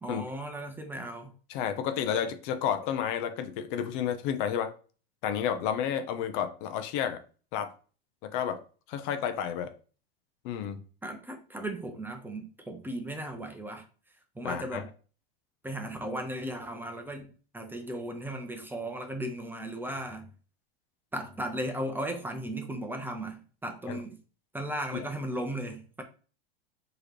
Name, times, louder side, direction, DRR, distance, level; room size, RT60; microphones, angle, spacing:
voice 1, 0.0-1.3 11.0-13.8 14.3-14.9 15.6-20.3 21.1-24.2 24.5-26.0, right 1 dB, 5° right, 0.8 m, -36 dB
voice 2, 1.5-4.7 5.2-7.2 7.5-7.7 8.2-8.6 8.9-9.7 10.4-10.8 14.4-14.8 23.9-24.0 24.9-25.0, left 9 dB, 55° left, 0.7 m, -31 dB
4.7 x 3.2 x 3.0 m
hypercardioid pair, 110°, 30 cm